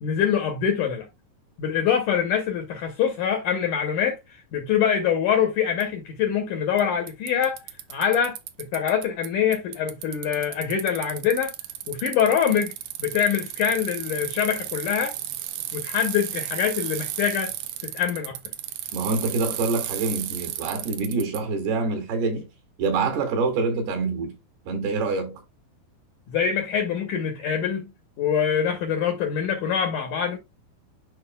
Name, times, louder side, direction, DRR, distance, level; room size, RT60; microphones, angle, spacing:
voice 1, 0.0-1.1 1.6-7.6 7.9-11.5 11.9-12.7 13.0-15.2 15.7-17.5 17.8-18.4 26.3-27.9 28.2-30.4, left 8 dB, 75° left, 1.9 m, -24 dB
Bicycle, 5.8-5.9 6.8-6.9 7.1-9.3 9.5-21.4, right 13 dB, 90° right, 1.7 m, -34 dB
voice 2, 18.9-22.5 22.8-24.3 24.7-25.4, right 4 dB, 70° right, 3.9 m, -26 dB
11.0 x 4.8 x 2.2 m
omnidirectional pair, 4.8 m